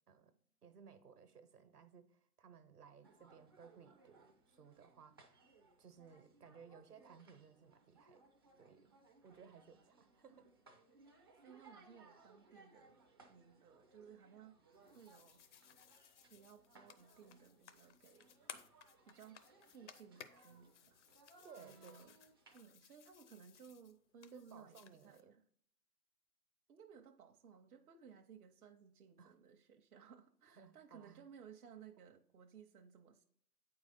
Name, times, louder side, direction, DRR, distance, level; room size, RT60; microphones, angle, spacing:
voice 1, 0.6-5.2 5.8-8.2 8.6-8.9 9.2-10.5 21.4-22.1 24.3-25.3 29.2-29.3 30.6-31.2, right 6 dB, 90° right, 9 dB, 1.1 m, -60 dB
sound 1, 3.0-22.6, right 3 dB, 20° right, 0.3 m, -66 dB
voice 2, 11.4-13.0 13.3-15.4 16.3-18.3 19.0-19.4 19.7-21.0 21.6-22.1 22.5-25.4 26.7-33.2, right 7 dB, 70° right, 4 dB, 0.8 m, -59 dB
sound 2, 14.7-25.2, left 9 dB, 50° left, 0.7 m, -60 dB
8.5 x 4.8 x 4.1 m, 0.65 s
figure-of-eight pair, 125°, 45 cm